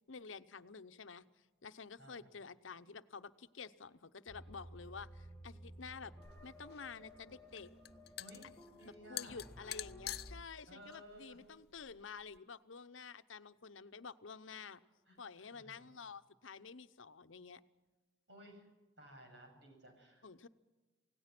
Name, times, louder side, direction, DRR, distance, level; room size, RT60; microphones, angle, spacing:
voice 1, 0.1-1.2 1.6-6.1 6.4-7.7 8.8-14.8 15.2-17.6 20.2-20.5, left 5 dB, 85° left, 12 dB, 0.9 m, -50 dB
voice 2, 2.0-2.3 8.2-8.5 8.7-9.4 10.7-11.4 15.1-15.9 18.3-18.7 19.0-20.3, equal, 65° right, 3 dB, 7.7 m, -57 dB
sound 1, 4.3-10.4, equal, 10° left, 1.5 m, -55 dB
sound 2, 6.2-12.4, left 13 dB, 50° left, 0.6 m, -49 dB
28.0 x 17.5 x 6.0 m, 1.2 s
head